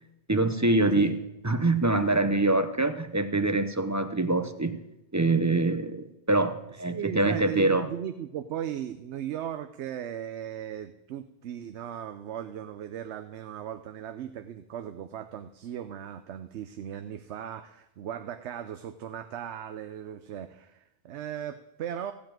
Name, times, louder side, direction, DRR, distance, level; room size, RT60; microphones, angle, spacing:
voice 1, 0.3-1.2 1.4-4.8 5.1-7.9, right 2 dB, 20° right, 10 dB, 0.5 m, -25 dB
voice 2, 1.9-2.4 6.9-22.1, right 10 dB, 80° right, 10 dB, 0.9 m, -37 dB
15.0 x 5.2 x 8.9 m, 0.89 s
omnidirectional pair, 1.1 m